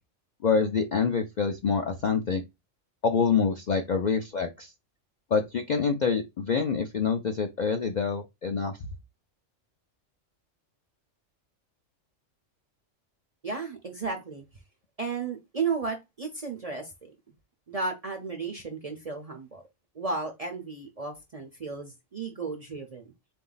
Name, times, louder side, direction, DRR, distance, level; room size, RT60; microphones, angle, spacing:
voice 1, 0.4-2.4 3.0-4.7 5.3-8.8, left 5 dB, 60° left, 0.5 m, -26 dB
voice 2, 13.4-14.4 15.0-17.1 17.7-19.6 19.9-23.0, right 4 dB, 40° right, 0.5 m, -34 dB
3.9 x 2.6 x 3.8 m
omnidirectional pair, 1.3 m